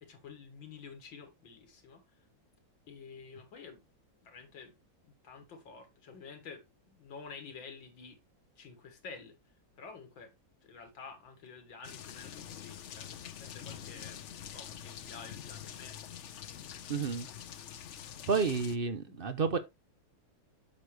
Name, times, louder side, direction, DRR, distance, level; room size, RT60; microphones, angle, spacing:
voice 1, 0.0-2.0 2.9-3.8 4.2-4.7 5.0-8.2 8.6-9.4 9.8-10.3 10.6-16.0 19.1-19.2, left 5 dB, 90° left, 2.6 m, -50 dB
sound 1, 11.8-18.8, left 9 dB, 65° left, 0.7 m, -46 dB
voice 2, 16.9-17.3 18.3-19.6, right 5 dB, 50° right, 0.6 m, -30 dB
8.5 x 6.5 x 3.2 m
omnidirectional pair, 2.0 m